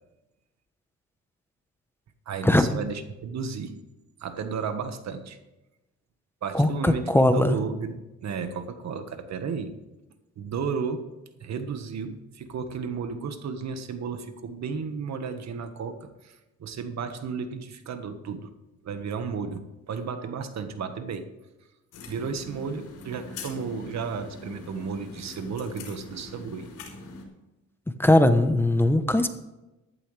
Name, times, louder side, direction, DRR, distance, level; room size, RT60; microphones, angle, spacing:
voice 1, 2.3-3.7 4.2-5.4 6.4-9.7 10.4-11.0 11.4-18.5 18.8-21.2 22.1-26.7, right 5 dB, 65° right, 8 dB, 1.6 m, -33 dB
voice 2, 6.5-7.6 28.0-29.3, left 1 dB, 5° left, 8 dB, 1.0 m, -20 dB
sound 1, 21.9-27.3, left 3 dB, 90° left, 3.6 m, -42 dB
14.5 x 11.5 x 3.4 m, 1.0 s
cardioid pair, 90°, 30 cm